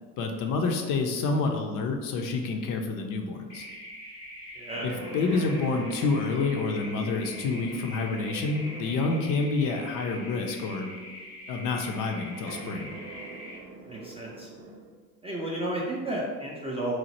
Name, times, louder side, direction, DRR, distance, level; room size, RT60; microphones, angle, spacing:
voice 1, 0.2-3.7 4.8-10.9 11.5-12.9, left 3 dB, 45° left, 3 dB, 0.5 m, -28 dB
sound 1, 3.5-13.6, left 1 dB, 85° left, 0.8 m, -44 dB
voice 2, 4.6-4.9 5.3-5.5 13.9-14.5 15.2-17.0, right 1 dB, 15° right, -4 dB, 0.3 m, -32 dB
sound 2, 4.7-9.4 10.1-10.2 12.3-14.9, right 3 dB, 55° right, 0.7 m, -43 dB
3.0 x 2.0 x 2.9 m, 1.5 s
hypercardioid pair, 60°, 46 cm